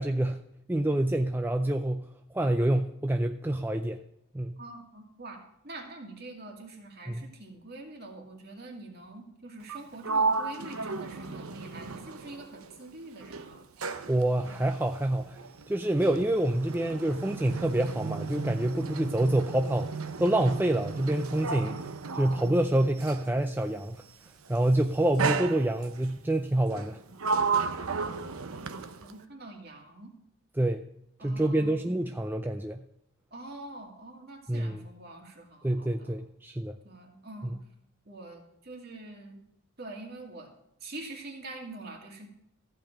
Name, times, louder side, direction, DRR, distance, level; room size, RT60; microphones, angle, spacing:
voice 1, 0.0-4.0 4.3-4.6 7.1-7.3 14.1-15.4 15.7-21.8 22.1-24.0 24.5-27.0 30.5-30.8 31.2-32.8 34.5-34.8 35.6-36.8 37.4-37.6, right 1 dB, 10° right, 5 dB, 0.4 m, -27 dB
voice 2, 4.6-13.6 27.9-28.1 29.0-30.1 31.2-31.8 33.3-36.1 36.8-37.6 38.1-39.4 39.8-40.5 40.8-42.3, right 2 dB, 45° right, 2 dB, 2.3 m, -45 dB
Sliding door, 9.6-12.9 13.2-23.4 24.3-24.6 25.2-26.1 26.7-29.2, right 4 dB, 85° right, 0.9 m, -34 dB
14.5 x 5.3 x 8.9 m, 0.78 s
head